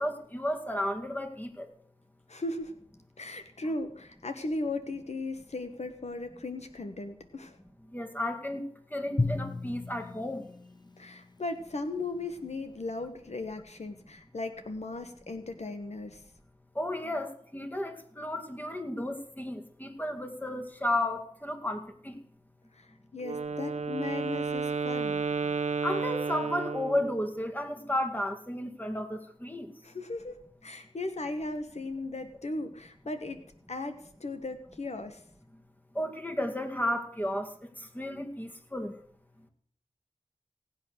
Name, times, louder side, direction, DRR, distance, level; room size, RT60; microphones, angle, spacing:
voice 1, 0.0-1.7 7.9-8.7 8.9-10.4 16.8-22.1 25.8-29.7 36.0-37.5 38.0-38.9, left 1 dB, 15° left, 6 dB, 2.1 m, -33 dB
voice 2, 2.3-2.7 3.2-7.6 11.0-16.2 22.7-25.3 29.8-33.4 33.7-35.2, left 2 dB, 70° left, 8 dB, 1.2 m, -37 dB
Drum, 9.2-11.6, left 3 dB, 40° left, 0.8 m, -34 dB
Wind instrument woodwind instrument, 23.2-27.3, right 4 dB, 85° right, 0.9 m, -32 dB
17.5 x 8.5 x 6.4 m, 0.63 s
wide cardioid pair, 45°, 12 cm